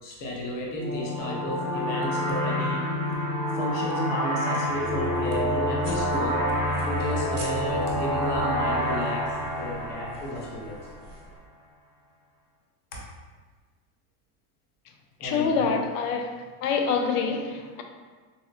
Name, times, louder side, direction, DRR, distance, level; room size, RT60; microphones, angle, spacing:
voice 1, 0.0-2.9 3.5-6.5 6.8-10.8 12.9-13.1 15.2-15.8, equal, 25° left, 0.3 m, -32 dB
sound 1, 0.7-11.1, equal, 5° left, 0.7 m, -28 dB
sound 2, 5.8-11.4, right 2 dB, 25° right, 0.9 m, -45 dB
voice 2, 15.2-16.3 16.6-17.8, left 5 dB, 90° left, 0.5 m, -26 dB
4.0 x 2.0 x 2.4 m
supercardioid pair, 150°, 44 cm